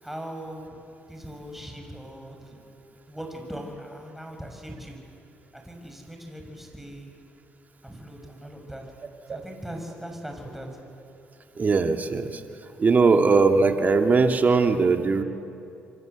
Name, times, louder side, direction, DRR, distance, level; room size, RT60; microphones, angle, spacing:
voice 1, 0.0-0.8 1.1-2.6 3.1-5.0 5.5-7.1 7.8-8.8 9.3-10.7, equal, 5° right, 2 dB, 6.3 m, -39 dB
voice 2, 11.6-12.4 12.8-15.2, right 4 dB, 40° right, 5 dB, 2.1 m, -20 dB
27.5 x 24.5 x 8.1 m, 2.7 s
cardioid pair, 80°, 4 cm